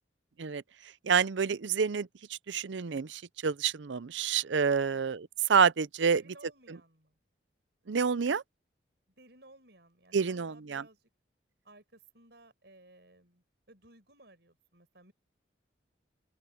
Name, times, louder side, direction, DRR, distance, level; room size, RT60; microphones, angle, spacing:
voice 1, 1.0-6.2 6.7-6.8 7.9-8.4 10.1-10.8, right 6 dB, 80° right, 0.6 m, -28 dB
voice 2, 4.8-5.2 6.1-7.2 9.2-11.0 11.6-15.1, right 2 dB, 65° right, 6.0 m, -58 dB
open air
head